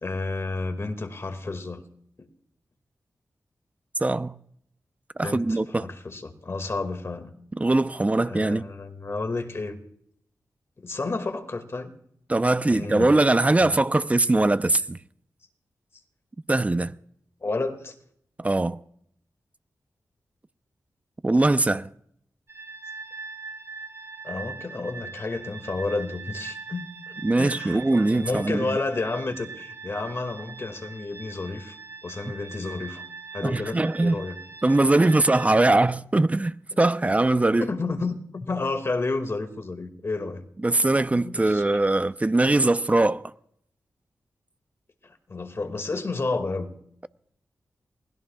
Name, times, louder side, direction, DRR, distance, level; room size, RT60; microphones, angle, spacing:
voice 1, 0.0-1.8 2.2-2.3 5.2-7.3 8.2-9.8 10.8-11.9 12.7-13.1 13.6-13.7 17.4-18.0 24.2-26.8 27.1-31.8 32.0-33.0 33.3-34.4 34.9-35.0 37.6-40.4 41.1-41.6 45.3-46.8, left 3 dB, 45° left, 2.1 m, -31 dB
voice 2, 4.0-4.3 5.2-5.9 7.5-8.7 12.3-15.0 16.5-16.9 18.4-18.8 21.2-21.9 27.2-28.8 33.4-34.2 34.6-37.7 40.6-43.3, right 2 dB, 20° right, 0.7 m, -21 dB
sound 1, 22.5-35.5, right 5 dB, 45° right, 2.9 m, -41 dB
29.0 x 20.0 x 2.4 m
cardioid pair, 75°, 6 cm